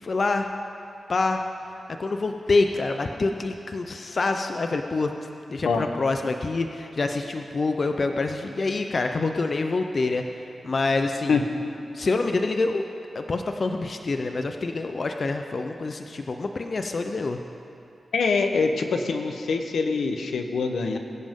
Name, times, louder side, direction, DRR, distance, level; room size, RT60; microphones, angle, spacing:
voice 1, 0.0-0.5 1.1-1.4 2.0-10.2 10.6-11.4 11.9-12.8 13.1-17.4, left 3 dB, 55° left, 5 dB, 0.6 m, -26 dB
voice 2, 18.1-21.0, left 4 dB, 85° left, 5 dB, 1.0 m, -24 dB
22.0 x 10.5 x 3.7 m, 2.7 s
cardioid pair, 70°, 0 cm